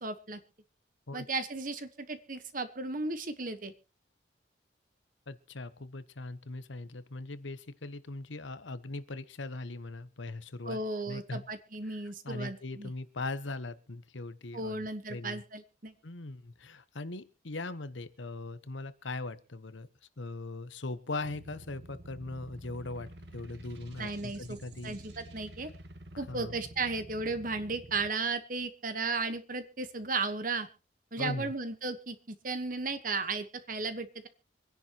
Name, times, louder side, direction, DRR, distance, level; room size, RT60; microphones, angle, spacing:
voice 1, 0.0-0.4 1.1-3.7 10.7-12.9 14.5-15.9 24.0-24.6 24.8-25.7 26.2-30.7 31.1-34.3, right 3 dB, 45° right, 10 dB, 1.3 m, -35 dB
voice 2, 5.3-10.8 11.1-11.5 11.9-15.4 16.0-19.9 20.2-25.0 26.1-26.5 31.2-31.5, left 2 dB, 80° left, 14 dB, 1.1 m, -40 dB
sound 1, 21.2-28.1, right 1 dB, 60° right, 1.5 m, -49 dB
26.0 x 10.5 x 3.0 m, 0.32 s
head